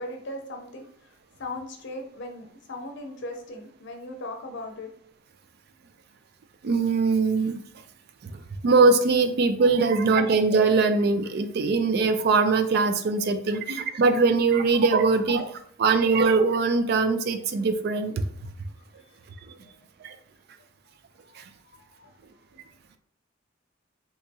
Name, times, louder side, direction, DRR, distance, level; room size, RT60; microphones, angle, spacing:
voice 1, 0.0-4.9 19.0-19.1 19.6-19.7 21.2-21.4 21.7-22.1, left 1 dB, 60° left, 3 dB, 0.7 m, -38 dB
voice 2, 6.6-7.6 8.2-15.5 15.8-18.2 20.0-20.2 21.4-21.5, right 4 dB, 50° right, 10 dB, 0.3 m, -22 dB
3.5 x 2.9 x 2.7 m, 0.62 s
head